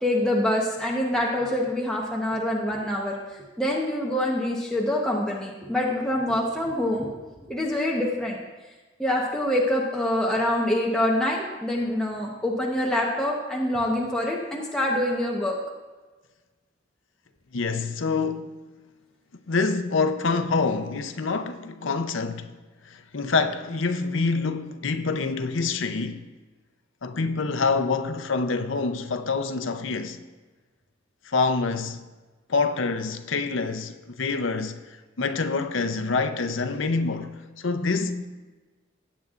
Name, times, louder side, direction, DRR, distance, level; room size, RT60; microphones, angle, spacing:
voice 1, 0.0-3.1 3.6-7.1 7.5-8.4 9.0-15.6, left 1 dB, 5° left, 1.0 m, -25 dB
voice 2, 17.5-18.6 19.5-22.5 22.9-26.2 27.0-30.2 31.3-32.0 32.5-34.8 35.2-38.2, left 4 dB, 75° left, 0.7 m, -26 dB
18.5 x 8.0 x 2.5 m
head